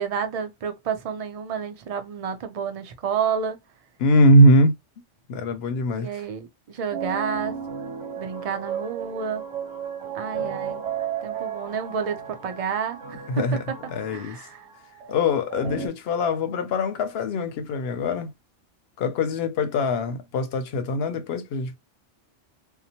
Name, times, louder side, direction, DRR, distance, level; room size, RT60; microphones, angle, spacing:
voice 1, 0.0-3.6 5.9-7.6 8.2-9.4 10.1-10.8 11.2-13.8 14.1-14.7, right 7 dB, 55° right, 0.4 m, -30 dB
voice 2, 4.0-4.7 5.3-6.1 10.4-10.5 13.3-13.6 13.9-14.4 15.1-18.3 19.0-21.8, left 1 dB, 65° left, 0.7 m, -21 dB
sound 1, 6.9-15.9, right 7 dB, 70° right, 1.3 m, -34 dB
2.8 x 2.0 x 2.8 m
omnidirectional pair, 1.3 m